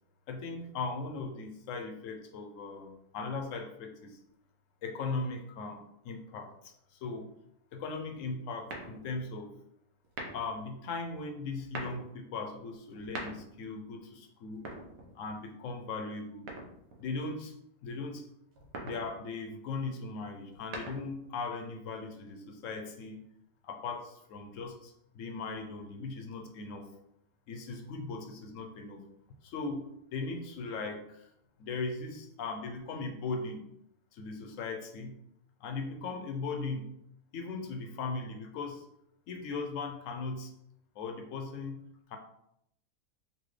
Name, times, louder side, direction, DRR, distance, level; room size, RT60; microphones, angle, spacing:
voice 1, 0.3-4.2 4.8-7.3 7.7-9.5 10.3-14.7 15.1-16.5 17.0-17.5 17.8-18.2 18.8-23.2 23.6-26.9 27.5-29.0 29.4-31.3 31.6-33.7 34.1-35.1 35.6-36.9 37.3-38.8 39.3-40.5 41.0-41.8 42.1-42.2, left 3 dB, 70° left, 4 dB, 0.8 m, -38 dB
sound 1, 8.7-9.3 10.0-10.6 11.5-12.1 12.9-13.7 14.5-15.4 16.5-17.1 18.5-19.1 20.4-21.3, right 2 dB, 75° right, 1.2 m, -43 dB
4.1 x 2.7 x 3.1 m, 0.77 s
omnidirectional pair, 1.5 m